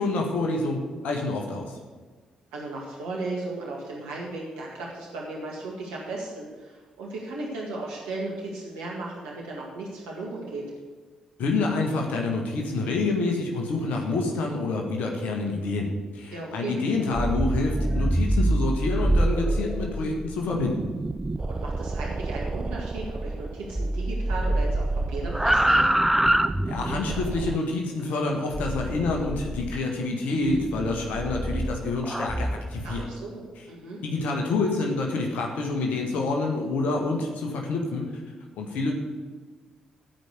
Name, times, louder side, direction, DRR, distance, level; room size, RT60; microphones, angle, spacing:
voice 1, 0.0-1.8 11.4-20.9 26.7-33.0 33.6-33.7 34.0-38.1 38.6-38.9, left 3 dB, 70° left, 1 dB, 1.7 m, -27 dB
voice 2, 2.5-10.7 16.3-16.7 21.5-25.8 32.8-34.0, right 2 dB, 85° right, -3 dB, 1.9 m, -36 dB
sound 1, 17.0-23.5 23.7-27.1 28.5-29.8 30.4-33.1, right 1 dB, 5° right, 0.8 m, -26 dB
sound 2, 20.5-27.6, right 3 dB, 30° right, 0.4 m, -33 dB
15.0 x 5.2 x 8.2 m, 1.4 s
hypercardioid pair, 45°, 3 cm